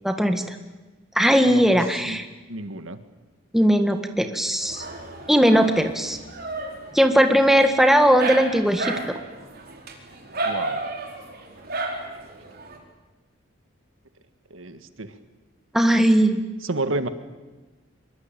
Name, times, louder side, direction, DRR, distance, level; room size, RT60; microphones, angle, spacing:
voice 1, 0.0-0.6 1.2-2.2 3.5-4.9 5.3-6.2 6.9-8.9 15.7-16.4, equal, ahead, 6 dB, 1.8 m, -18 dB
voice 2, 1.4-1.8 2.1-2.2 2.5-3.0 10.5-10.8 14.5-15.1 16.6-17.1, right 2 dB, 85° right, 10 dB, 1.7 m, -30 dB
Dog, 4.6-12.8, right 2 dB, 50° right, 4.7 m, -33 dB
25.0 x 22.5 x 9.1 m, 1.2 s
head